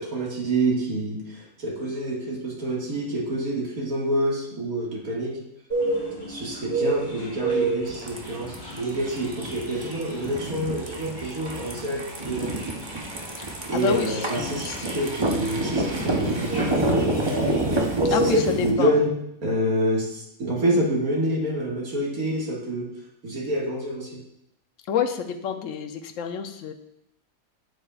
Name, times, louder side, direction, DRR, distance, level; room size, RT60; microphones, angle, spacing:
voice 1, 0.0-5.4 6.3-12.5 13.6-17.3 18.0-19.1 19.4-22.9 23.2-24.2, right 1 dB, 85° right, -2 dB, 2.3 m, -27 dB
sound 1, 5.7-18.5, right 3 dB, 30° left, 2.7 m, -32 dB
sound 2, 7.9-18.7, right 1 dB, 25° right, 0.7 m, -28 dB
voice 2, 13.4-14.8 18.1-19.0 24.9-26.7, left 7 dB, 70° left, 5 dB, 1.0 m, -28 dB
8.9 x 8.2 x 2.4 m, 0.79 s
omnidirectional pair, 1.5 m